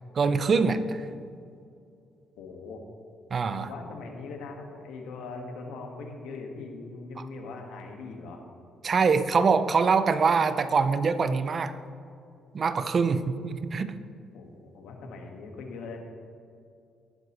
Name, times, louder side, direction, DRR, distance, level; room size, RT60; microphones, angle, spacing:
voice 1, 0.1-1.1 3.3-3.7 8.8-11.8 12.5-13.9, right 5 dB, 45° right, 11 dB, 0.7 m, -24 dB
voice 2, 2.4-2.8 3.6-8.4 14.3-16.0, left 3 dB, 90° left, 2 dB, 1.6 m, -41 dB
19.0 x 7.9 x 3.1 m, 2.5 s
cardioid pair, 90°, 0 cm